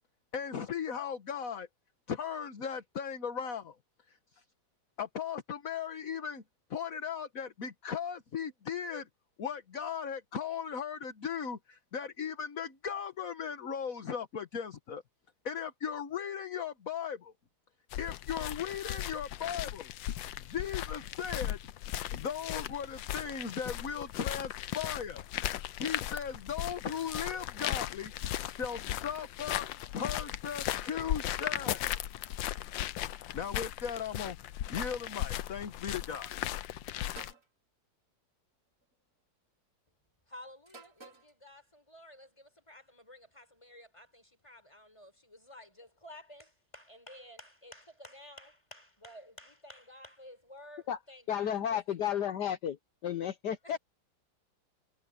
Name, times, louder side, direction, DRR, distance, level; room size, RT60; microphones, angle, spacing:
voice 1, 0.3-1.7 2.1-3.7 5.0-6.4 6.7-9.1 9.4-15.0 15.4-17.3 18.0-19.9 20.4-21.6 22.1-25.2 25.8-28.1 28.5-29.7 29.9-31.9 33.3-34.4 34.7-36.3, left 7 dB, 50° left, 1.7 m, -37 dB
sound 1, 17.9-37.3, left 12 dB, 85° left, 1.4 m, -37 dB
sound 2, 37.2-37.5 38.7-39.0 40.7-41.3, right 2 dB, 50° right, 7.3 m, -51 dB
voice 2, 40.3-52.0 53.6-53.8, left 1 dB, 15° left, 4.3 m, -53 dB
voice 3, 51.3-52.8 53.0-53.8, left 9 dB, 65° left, 1.5 m, -32 dB
omnidirectional pair, 2.0 m